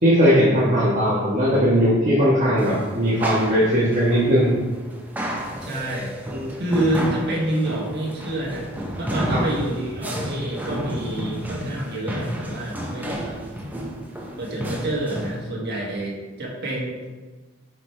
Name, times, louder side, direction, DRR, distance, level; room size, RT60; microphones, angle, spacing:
voice 1, 0.0-4.5 6.3-6.5 9.3-9.4, equal, 35° right, -8 dB, 1.3 m, -19 dB
sound 1, 2.6-15.4, equal, 10° right, 0.7 m, -31 dB
voice 2, 5.6-6.1 6.6-8.7 9.0-13.4 14.4-17.1, right 1 dB, 50° right, -3 dB, 1.6 m, -27 dB
8.2 x 4.7 x 3.3 m, 1.3 s
head